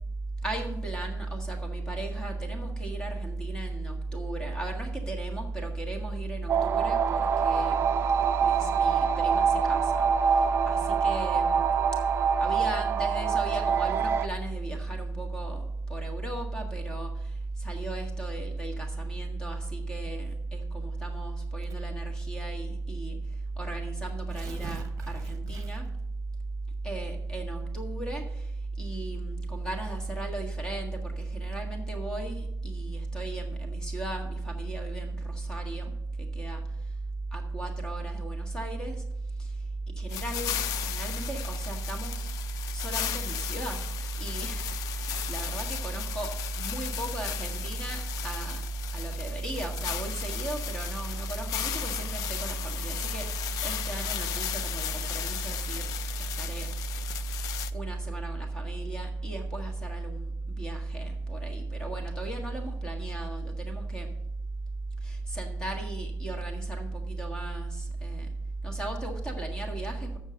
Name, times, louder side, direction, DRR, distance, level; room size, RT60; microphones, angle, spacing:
voice 1, 0.4-8.0 8.4-11.7 12.4-23.2 23.6-25.9 26.8-28.5 28.8-35.9 36.2-36.6 37.3-39.0 39.4-39.5 40.0-42.3 42.7-43.8 44.2-48.6 48.9-55.9 56.2-56.7 57.7-64.1 65.0-68.3 68.6-70.2, right 2 dB, 10° left, 2 dB, 1.6 m, -34 dB
sound 1, 6.5-14.3, right 6 dB, 40° right, 0.4 m, -25 dB
Tearing, 21.6-22.0 22.9-23.0 23.3-23.4 24.1-26.0, right 5 dB, 55° right, 0.9 m, -45 dB
sound 2, 40.1-57.7, left 11 dB, 70° left, 0.5 m, -36 dB
7.4 x 6.4 x 6.3 m, 0.77 s
cardioid pair, 125°, 6 cm